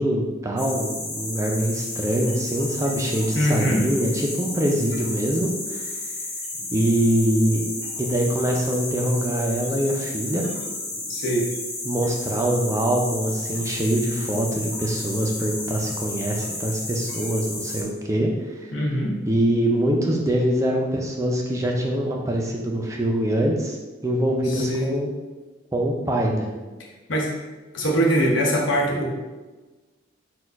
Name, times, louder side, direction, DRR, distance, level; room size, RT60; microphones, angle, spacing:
voice 1, 0.0-5.9 6.7-7.6 8.0-10.4 11.8-18.3 18.6-18.7 19.3-23.8 24.0-25.1 25.7-26.5, right 1 dB, 15° right, 0 dB, 0.4 m, -24 dB
sound 1, 0.6-17.8, left 2 dB, 60° left, 1.2 m, -32 dB
voice 2, 3.3-3.8 11.1-11.4 18.7-19.1 24.5-24.9 27.1-27.3 27.7-29.1, equal, 80° left, -1 dB, 0.9 m, -22 dB
4.3 x 2.3 x 4.4 m, 1.2 s
head